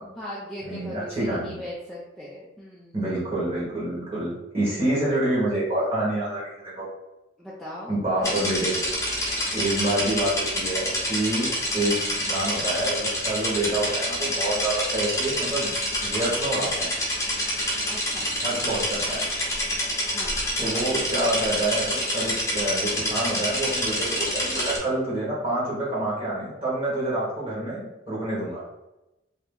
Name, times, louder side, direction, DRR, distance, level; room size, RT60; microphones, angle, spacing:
voice 1, 0.0-3.0 7.4-8.5 10.0-10.2 11.7-12.0 17.9-18.3 20.1-20.4, equal, ahead, -8 dB, 0.4 m, -39 dB
voice 2, 0.6-1.6 2.9-6.9 7.9-8.8 9.5-11.5 11.7-15.7 16.0-16.9 18.4-19.2 20.6-28.6, right 1 dB, 30° right, -7 dB, 1.3 m, -27 dB
sound 1, 8.2-24.8, equal, 15° left, 0.9 m, -27 dB
2.8 x 2.7 x 3.6 m, 0.95 s
head